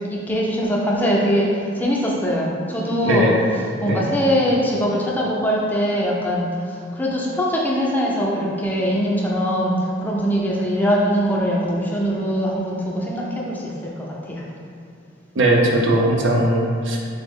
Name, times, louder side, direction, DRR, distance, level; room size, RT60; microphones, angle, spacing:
voice 1, 0.0-6.5 7.0-9.7 10.0-13.6 14.3-14.4, equal, 10° left, -4 dB, 0.4 m, -22 dB
voice 2, 3.0-3.4 3.8-4.0 15.4-17.1, right 1 dB, 70° right, -1 dB, 0.5 m, -19 dB
3.9 x 2.0 x 3.5 m, 2.2 s
head